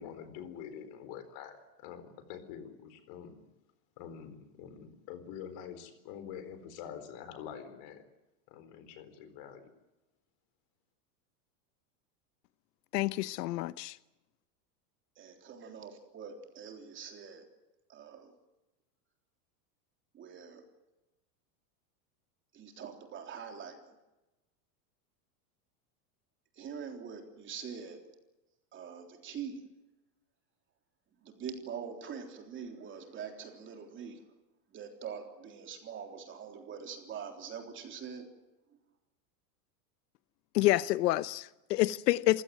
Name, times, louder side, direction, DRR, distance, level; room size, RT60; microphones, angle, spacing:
voice 1, 0.0-3.4 4.0-8.1 8.5-9.7, left 8 dB, 45° left, 4.3 m, -46 dB
voice 2, 12.9-14.0 40.5-42.4, left 17 dB, 80° left, 0.9 m, -28 dB
voice 3, 15.2-17.5 17.9-18.3 20.1-20.6 22.5-23.9 26.6-28.0 28.7-29.6 31.2-34.2 34.7-38.3, right 7 dB, 25° right, 3.6 m, -44 dB
27.0 x 16.5 x 9.4 m
supercardioid pair, 160°, 48 cm